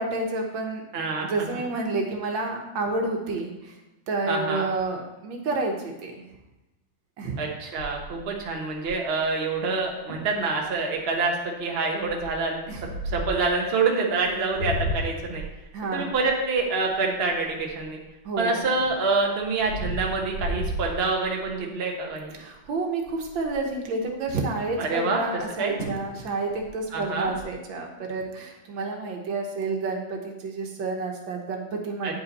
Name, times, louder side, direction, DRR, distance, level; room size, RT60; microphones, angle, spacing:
voice 1, 0.0-0.8 1.2-3.8 4.1-6.2 7.2-7.4 12.7-12.8 15.7-16.2 18.3-18.6 22.4-32.2, right 3 dB, 85° right, 2 dB, 1.8 m, -29 dB
voice 2, 0.9-1.6 4.3-4.6 7.4-12.6 13.0-15.4 15.9-18.0 18.4-22.3 24.8-25.8 26.9-27.3 32.0-32.2, right 3 dB, 40° right, 1 dB, 1.2 m, -26 dB
sound 1, 7.8-9.2 9.8-9.9 10.1-10.4 10.9-11.2 12.0-13.5 14.2-18.1 18.5-21.6 22.0-22.3 22.6-22.7 23.0-23.7 25.4-25.5 25.8-26.1 26.4-27.4, equal, 65° left, 3.3 m, -34 dB
9.0 x 5.5 x 4.1 m, 1.0 s
omnidirectional pair, 2.1 m